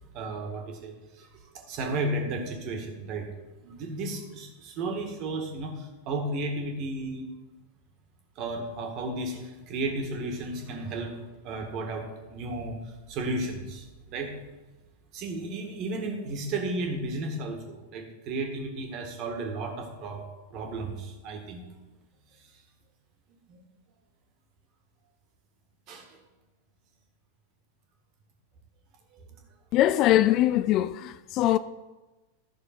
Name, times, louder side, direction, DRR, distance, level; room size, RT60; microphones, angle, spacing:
voice 1, 0.1-1.3 1.5-3.3 3.6-7.3 8.4-11.1 11.4-12.8 13.1-14.3 15.1-21.6 23.5-23.6 25.9-26.1, right 2 dB, 40° right, 2.0 m, -33 dB
voice 2, 29.7-31.6, left 13 dB, 40° left, 0.3 m, -22 dB
13.0 x 6.4 x 4.4 m
figure-of-eight pair, 90°, 0 cm